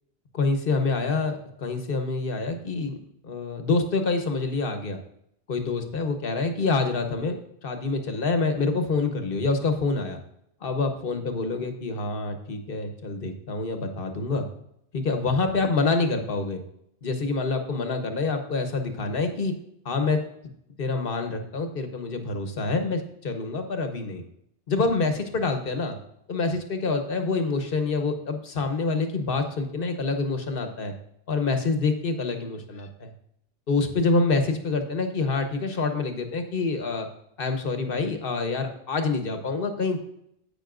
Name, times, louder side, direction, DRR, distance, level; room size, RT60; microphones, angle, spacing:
voice 1, 0.3-3.0 3.2-5.0 5.5-7.4 7.6-10.2 10.6-14.5 14.9-16.6 17.0-19.5 19.8-20.2 20.8-24.2 24.7-26.0 26.3-30.9 31.3-33.1 33.7-37.1 37.4-40.0, left 3 dB, 60° left, 6 dB, 1.3 m, -26 dB
10.5 x 8.6 x 2.5 m, 0.74 s
omnidirectional pair, 1.0 m